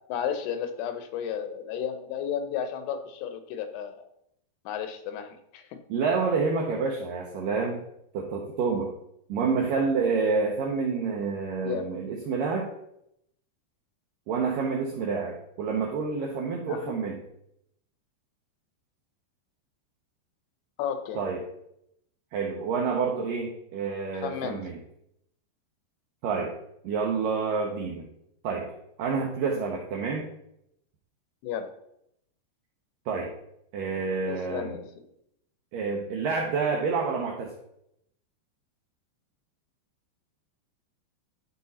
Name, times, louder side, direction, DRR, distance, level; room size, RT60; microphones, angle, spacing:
voice 1, 0.1-4.0 4.7-5.8 11.6-11.9 16.7-16.9 20.8-21.2 24.2-24.6 31.4-31.7 34.3-34.8, left 8 dB, 80° left, 8 dB, 2.8 m, -33 dB
voice 2, 5.9-7.8 8.1-8.9 9.3-12.7 14.3-17.2 21.2-21.4 22.3-24.8 26.2-26.5 26.8-28.1 28.4-28.7 29.0-30.3 33.1-33.3 33.7-34.8 35.7-37.5, right 5 dB, 75° right, 0 dB, 2.0 m, -28 dB
11.0 x 4.5 x 4.1 m, 0.77 s
omnidirectional pair, 4.9 m